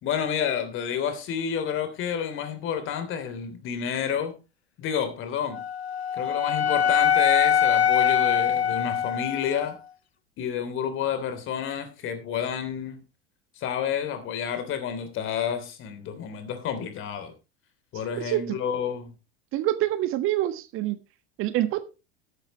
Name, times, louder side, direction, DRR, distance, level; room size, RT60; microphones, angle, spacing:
voice 1, 0.0-4.4 4.8-5.6 6.1-9.8 10.4-13.0 13.6-17.3 17.9-19.1, left 8 dB, 40° left, 3.3 m, -30 dB
Wind instrument woodwind instrument, 5.5-9.7, left 8 dB, 90° left, 0.5 m, -23 dB
voice 2, 18.2-18.6 19.5-21.0 21.4-21.8, right 14 dB, 45° right, 1.4 m, -26 dB
13.5 x 12.0 x 3.0 m
figure-of-eight pair, 80°, 31 cm